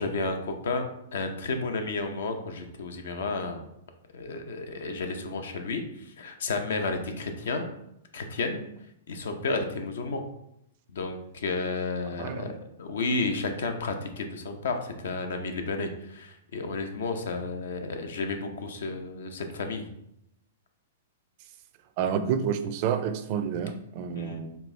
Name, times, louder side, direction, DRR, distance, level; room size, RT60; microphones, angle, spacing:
voice 1, 0.0-3.6 4.1-7.7 8.1-8.6 9.1-10.2 10.9-12.5 12.8-19.9 24.1-24.4, left 3 dB, 75° left, 5 dB, 0.6 m, -32 dB
voice 2, 12.2-12.5 22.0-24.6, right 7 dB, 45° right, 10 dB, 0.4 m, -29 dB
4.5 x 2.7 x 3.2 m, 0.80 s
hypercardioid pair, 140°, 0 cm